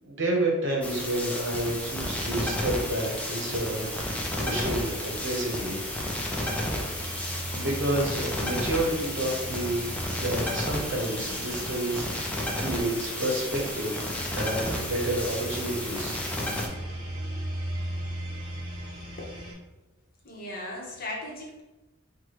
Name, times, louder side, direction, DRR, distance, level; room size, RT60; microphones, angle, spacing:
voice 1, 0.0-5.8 7.5-14.0 14.3-16.2, right 1 dB, 65° right, -1 dB, 0.9 m, -30 dB
sound 1, 0.8-16.7, left 1 dB, 5° left, 0.4 m, -32 dB
sound 2, 2.0-19.5, right 1 dB, 25° right, 1.3 m, -39 dB
voice 2, 19.2-19.5 20.2-21.6, left 1 dB, 45° left, -2 dB, 0.9 m, -37 dB
4.6 x 2.2 x 3.0 m, 1.1 s
head